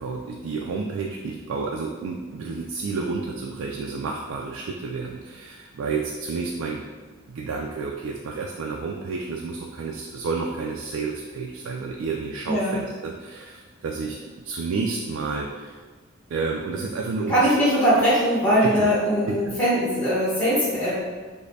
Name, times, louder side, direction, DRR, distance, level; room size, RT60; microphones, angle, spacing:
voice 1, 0.0-6.8 7.3-15.8 16.3-17.5 18.6-18.9 19.3-19.5, right 4 dB, 85° right, 0 dB, 0.3 m, -30 dB
voice 2, 12.5-12.8 17.3-21.0, equal, 10° left, -9 dB, 1.1 m, -21 dB
5.0 x 2.0 x 2.7 m, 1.4 s
head